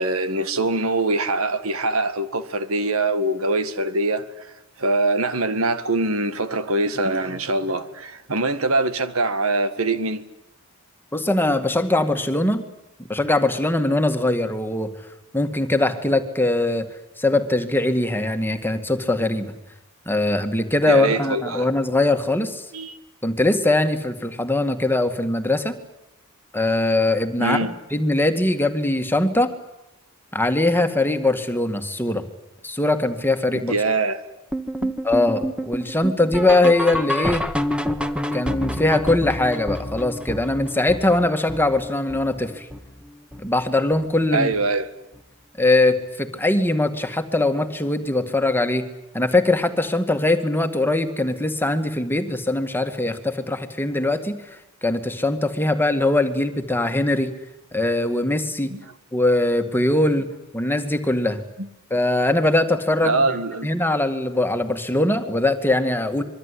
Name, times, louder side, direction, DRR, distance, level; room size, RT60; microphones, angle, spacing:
voice 1, 0.0-4.5 4.8-10.2 20.9-21.7 22.7-23.0 27.4-27.7 33.7-34.2 34.8-34.9 44.3-44.9 58.7-58.8 61.6-61.7 63.0-63.7, right 2 dB, 75° right, 1.8 m, -23 dB
voice 2, 11.1-12.6 13.1-14.9 15.3-16.9 17.2-19.6 20.1-22.6 23.2-25.8 26.5-27.6 27.9-29.5 30.3-32.3 32.6-33.7 35.0-37.5 38.3-42.7 43.4-44.5 45.6-48.9 49.1-57.3 57.7-58.7 59.1-60.3 60.5-61.4 61.9-63.4 63.6-66.2, left 2 dB, 10° left, 2.0 m, -21 dB
sound 1, 34.5-43.6 43.9-44.2 44.5-44.6 45.1-45.2 45.7-45.8, equal, 5° right, 1.3 m, -29 dB
26.0 x 22.5 x 10.0 m
head